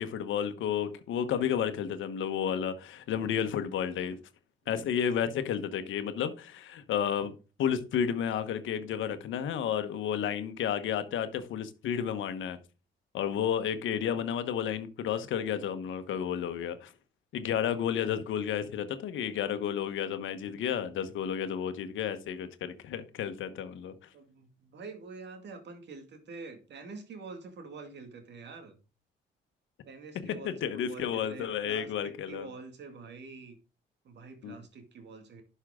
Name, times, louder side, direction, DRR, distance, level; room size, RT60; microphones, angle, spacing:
voice 1, 0.0-4.2 4.7-7.3 7.6-12.6 13.1-16.9 17.3-23.9 30.2-32.5 34.4-34.6, left 8 dB, 75° left, 1.2 m, -32 dB
voice 2, 24.1-28.8 29.9-33.6 34.0-35.4, right 4 dB, 60° right, 2.3 m, -46 dB
11.5 x 5.6 x 3.7 m
cardioid pair, 90°, 20 cm